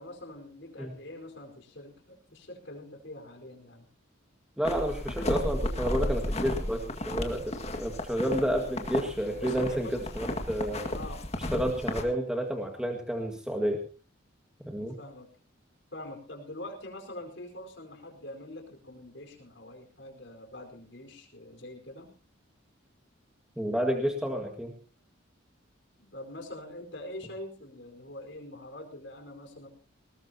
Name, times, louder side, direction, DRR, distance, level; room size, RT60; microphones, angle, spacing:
voice 1, 0.0-3.9 9.3-10.2 10.9-11.3 12.1-12.3 15.0-15.3 15.9-22.1 26.0-29.7, left 1 dB, 60° left, 3 dB, 4.8 m, -44 dB
sound 1, 4.6-12.0, left 1 dB, 30° left, 2.0 m, -33 dB
voice 2, 4.6-10.9 11.5-13.8 14.6-15.0 23.6-24.7, equal, 5° right, 2 dB, 1.8 m, -30 dB
20.5 x 18.5 x 2.9 m, 0.36 s
head